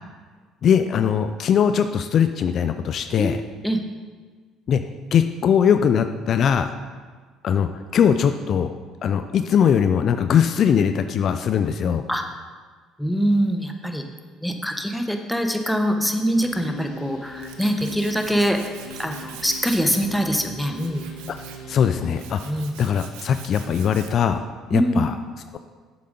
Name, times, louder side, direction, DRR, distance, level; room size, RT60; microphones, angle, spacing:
voice 1, 0.6-3.4 4.7-4.8 5.1-6.7 7.4-8.7 9.0-12.0 21.7-24.4 24.7-25.1, left 8 dB, 55° left, 9 dB, 0.4 m, -20 dB
voice 2, 3.2-3.8 12.1-12.2 13.0-14.0 14.4-18.6 19.0-21.1 22.4-22.9 24.7-25.0, equal, 5° left, 4 dB, 1.1 m, -23 dB
sound 1, 16.3-22.2, equal, 80° left, 1.5 m, -40 dB
Tools, 16.9-24.3, right 8 dB, 75° right, 0.8 m, -44 dB
7.6 x 7.1 x 5.3 m, 1.5 s
hypercardioid pair, 65°, 0 cm